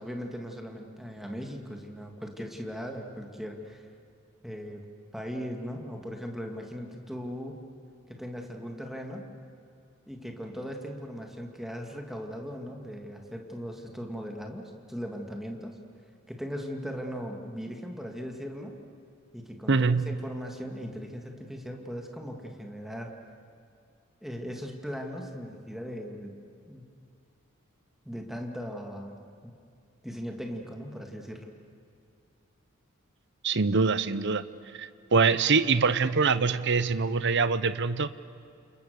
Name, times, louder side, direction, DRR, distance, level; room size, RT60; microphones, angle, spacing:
voice 1, 0.0-3.9 4.4-4.8 5.1-7.7 8.1-9.3 10.1-15.8 16.3-18.7 19.3-23.1 24.2-26.3 26.7-26.9 28.1-29.2 29.4-29.5 30.0-31.5, equal, ahead, 2 dB, 2.3 m, -38 dB
voice 2, 19.7-20.2 33.4-34.4 34.7-38.1, right 4 dB, 55° right, 14 dB, 0.8 m, -24 dB
29.5 x 28.0 x 6.9 m, 2.5 s
head